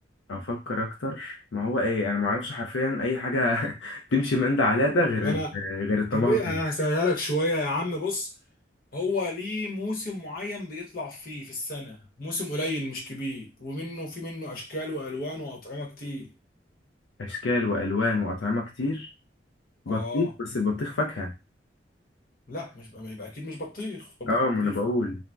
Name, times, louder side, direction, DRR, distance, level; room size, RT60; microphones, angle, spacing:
voice 1, 0.3-6.4 17.2-19.1 19.9-21.3 24.3-25.2, left 2 dB, 85° left, 0.6 m, -26 dB
voice 2, 5.2-5.6 6.1-8.3 8.9-16.3 19.9-20.3 22.5-24.8, left 1 dB, 50° left, 1.0 m, -31 dB
2.6 x 2.1 x 3.3 m
head